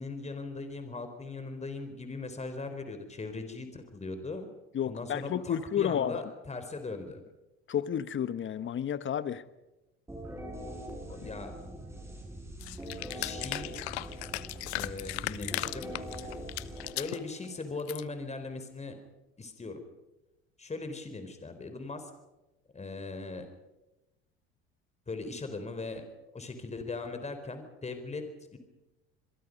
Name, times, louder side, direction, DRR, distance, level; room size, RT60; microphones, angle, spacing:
voice 1, 0.0-4.5 4.8-7.2 11.1-11.5 13.0-13.7 14.7-15.9 17.0-19.0 19.4-19.8 20.6-22.1 22.7-23.5 25.1-26.0 26.3-28.3 28.5-28.6, left 3 dB, 20° left, 8 dB, 4.2 m, -39 dB
voice 2, 4.7-6.2 7.7-9.4 11.2-11.3, left 9 dB, 35° left, 14 dB, 1.4 m, -31 dB
sound 1, 10.1-17.7, equal, 10° right, 7.6 m, -43 dB
sound 2, 12.6-17.2 17.6-18.0, left 19 dB, 80° left, 0.8 m, -37 dB
27.5 x 22.0 x 5.4 m, 0.99 s
hypercardioid pair, 75°, 32 cm